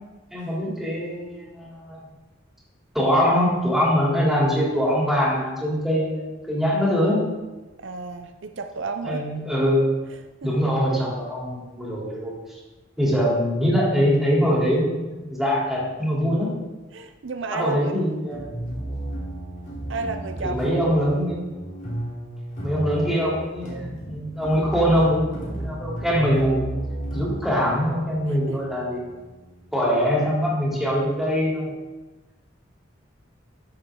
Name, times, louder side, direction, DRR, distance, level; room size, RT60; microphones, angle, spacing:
voice 1, 0.3-2.1 2.9-7.2 9.0-9.9 10.4-12.3 13.0-16.6 17.5-18.7 20.4-21.4 22.6-26.7 27.1-29.0 29.7-31.7, equal, ahead, -6 dB, 3.3 m, -23 dB
voice 2, 7.8-9.3 10.1-10.6 16.9-18.0 19.9-20.6 28.3-28.7, right 4 dB, 70° right, 7 dB, 0.6 m, -33 dB
sound 1, 18.3-31.1, right 1 dB, 45° left, 3.2 m, -35 dB
13.0 x 7.2 x 3.8 m, 1.1 s
head